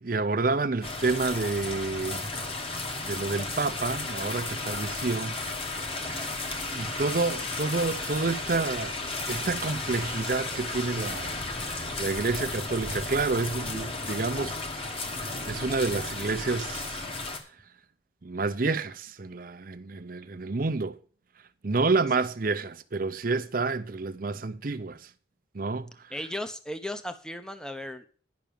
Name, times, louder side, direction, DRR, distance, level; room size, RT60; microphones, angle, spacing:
voice 1, 0.0-2.2 2.7-5.4 6.1-6.4 6.7-9.0 9.3-14.5 15.2-17.0 18.2-21.0 21.6-25.1 25.5-25.9, right 3 dB, 50° right, 0.6 m, -29 dB
sound 1, 0.8-17.4, left 2 dB, 30° left, 1.4 m, -34 dB
voice 2, 26.1-28.1, left 1 dB, 5° left, 0.7 m, -36 dB
10.5 x 6.1 x 6.9 m
head